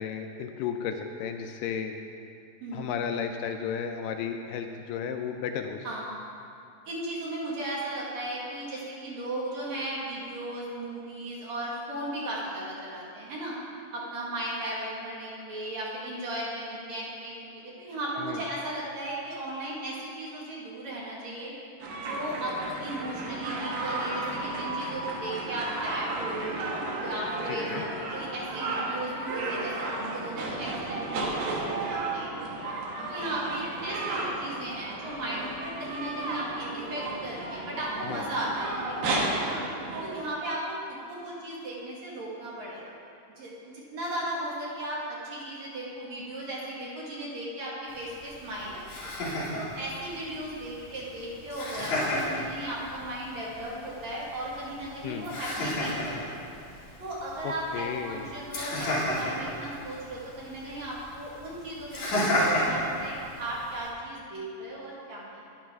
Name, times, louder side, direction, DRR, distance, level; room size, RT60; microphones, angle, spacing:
voice 1, 0.0-1.9 2.7-5.9 18.2-18.4 27.5-27.8 38.0-38.3 55.0-55.3 57.4-58.3, left 7 dB, 80° left, 5 dB, 2.1 m, -33 dB
voice 2, 2.6-3.1 5.8-6.2 6.9-13.6 13.9-21.5 22.0-26.6 27.0-32.2 33.0-39.6 40.0-42.9 43.4-48.9 49.5-56.4 57.0-65.4, right 1 dB, 55° right, -6 dB, 2.7 m, -36 dB
sound 1, 21.8-40.2, right 2 dB, 90° right, 3.1 m, -33 dB
Laughter, 47.9-63.9, left 1 dB, 55° left, 3.5 m, -33 dB
12.0 x 10.0 x 3.5 m, 2.5 s
omnidirectional pair, 4.1 m